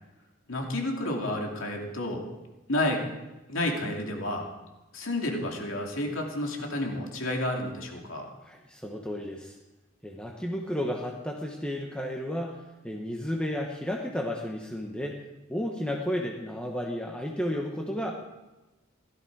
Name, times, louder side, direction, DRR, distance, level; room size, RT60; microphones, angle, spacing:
voice 1, 0.5-2.3 2.7-3.1 3.5-4.5 4.9-8.3, left 1 dB, 80° left, 1 dB, 2.6 m, -30 dB
voice 2, 8.4-9.6 10.0-15.2 15.5-18.2, equal, 5° left, 0 dB, 1.1 m, -33 dB
16.5 x 13.0 x 4.7 m, 1.1 s
head